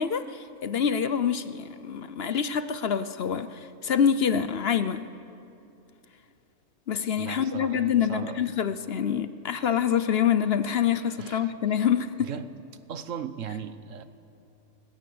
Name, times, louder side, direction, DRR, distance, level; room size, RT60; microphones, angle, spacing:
voice 1, 0.0-5.1 6.9-12.3, left 8 dB, 55° left, 0.8 m, -26 dB
voice 2, 7.2-8.4 11.2-11.9 12.2-12.5 12.9-14.0, right 8 dB, 70° right, 1.3 m, -38 dB
21.5 x 19.0 x 8.6 m
omnidirectional pair, 1.4 m